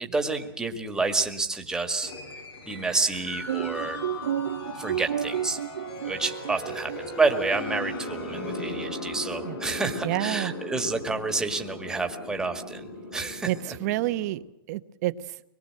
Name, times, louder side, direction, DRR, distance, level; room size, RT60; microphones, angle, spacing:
voice 1, 0.0-2.1 2.7-4.0 4.8-5.6 6.0-13.8, right 3 dB, 5° right, 5 dB, 1.9 m, -29 dB
sound 1, 2.0-14.3, left 2 dB, 80° left, 7.8 m, -38 dB
sound 2, 3.5-7.1, right 10 dB, 80° right, 1.3 m, -31 dB
voice 2, 10.0-10.5 13.4-14.4 14.7-15.3, right 16 dB, 45° right, 12 dB, 1.0 m, -28 dB
24.5 x 22.5 x 7.8 m, 0.80 s
supercardioid pair, 160°, 12 cm